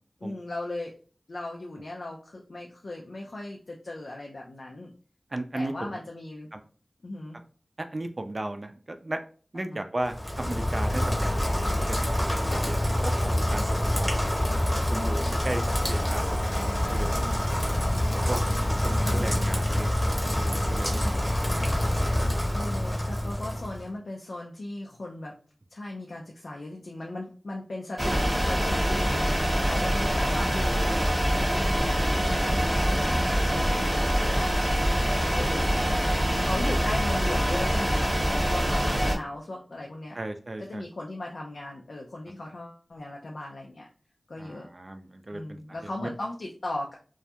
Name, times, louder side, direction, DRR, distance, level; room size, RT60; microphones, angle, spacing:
voice 1, 0.2-0.9 1.3-4.9 5.5-6.5 7.0-7.4 9.5-9.8 19.0-19.7 21.5-22.1 22.5-25.4 25.7-34.6 35.3-35.8 36.4-40.2 40.6-43.9 44.3-44.7 45.3-46.9, left 2 dB, 90° left, -1 dB, 0.4 m, -37 dB
voice 2, 5.3-6.0 6.5-6.6 7.9-9.2 9.5-12.1 12.6-13.1 13.5-13.7 13.9-14.6 14.9-17.6 18.3-18.4 18.8-19.9 20.2-21.8 22.6-22.7 30.6-30.9 33.7-34.3 35.1-36.0 40.2-40.8 44.4-46.1, right 1 dB, 50° right, 6 dB, 0.4 m, -36 dB
Rain, 10.0-23.9, left 1 dB, 20° left, 0.7 m, -26 dB
sound 1, 28.0-39.2, equal, 25° right, 0.7 m, -25 dB
2.3 x 2.1 x 2.7 m, 0.40 s
wide cardioid pair, 50°, 0 cm